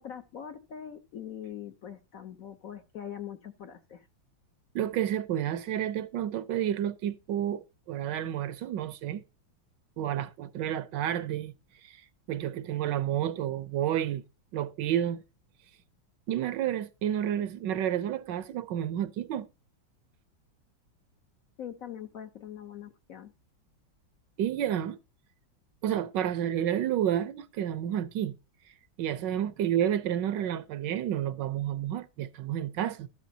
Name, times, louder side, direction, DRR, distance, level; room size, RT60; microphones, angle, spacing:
voice 1, 0.0-4.1 21.6-23.3, left 9 dB, 60° left, 0.9 m, -42 dB
voice 2, 4.7-9.2 10.0-11.5 11.8-12.0 12.3-14.2 14.5-15.2 16.3-19.5 24.4-25.0 25.8-28.4 29.0-33.1, right 10 dB, 70° right, 1.2 m, -30 dB
12.5 x 10.0 x 2.7 m
omnidirectional pair, 2.1 m